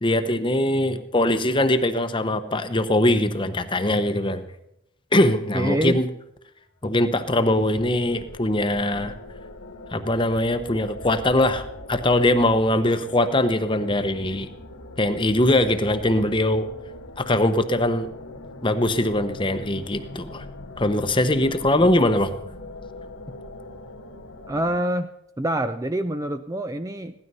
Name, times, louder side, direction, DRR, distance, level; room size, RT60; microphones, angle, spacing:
voice 1, 0.0-4.5 5.1-6.1 6.8-9.1 9.9-14.5 15.0-16.7 17.2-18.1 18.6-20.4 20.8-22.4, left 1 dB, 25° left, 9 dB, 0.9 m, -21 dB
voice 2, 5.5-6.0 24.5-27.1, right 1 dB, 15° right, 9 dB, 0.4 m, -26 dB
sound 1, 6.8-24.8, left 2 dB, 85° left, 2.2 m, -41 dB
17.0 x 12.5 x 5.5 m, 0.83 s
head